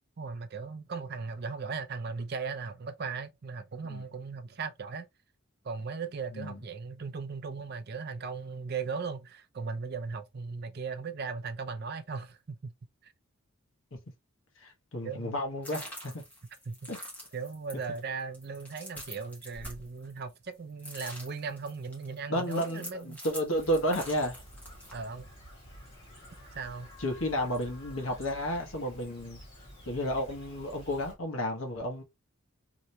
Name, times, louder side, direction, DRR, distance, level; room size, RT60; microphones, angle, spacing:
voice 1, 0.2-5.1 5.6-12.7 15.0-15.4 16.7-17.0 17.3-23.2 24.9-25.3 26.5-26.9, right 5 dB, 45° right, 0.4 m, -37 dB
voice 2, 14.6-16.2 16.9-17.0 22.3-22.8 23.1-24.4 27.0-29.4 29.8-32.0, equal, 65° left, 1.1 m, -32 dB
sound 1, 15.6-20.5 20.8-24.9, equal, 5° left, 1.2 m, -45 dB
Chirp tweet, 23.6-31.1, equal, 25° left, 1.7 m, -50 dB
3.2 x 2.9 x 2.7 m
head